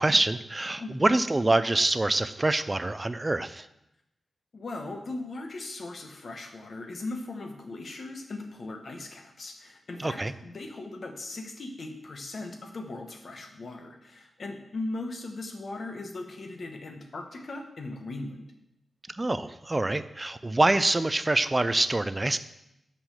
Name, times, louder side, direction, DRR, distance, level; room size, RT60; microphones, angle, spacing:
voice 1, 0.0-3.7 10.0-10.3 19.1-22.4, right 2 dB, 20° right, 13 dB, 0.4 m, -25 dB
voice 2, 4.5-18.5, left 2 dB, 50° left, 4 dB, 1.2 m, -38 dB
5.9 x 5.6 x 6.6 m, 0.85 s
wide cardioid pair, 140°, 0 cm